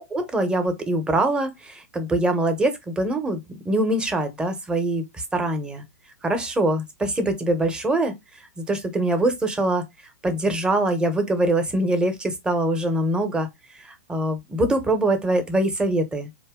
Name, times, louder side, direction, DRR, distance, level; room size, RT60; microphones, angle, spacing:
voice 1, 0.1-3.4 3.6-5.0 5.3-5.8 6.2-8.1 8.6-9.8 10.2-13.5 13.8-16.4, right 1 dB, 10° right, 1.0 m, -23 dB
4.3 x 2.8 x 3.7 m
hypercardioid pair, 120°, 8 cm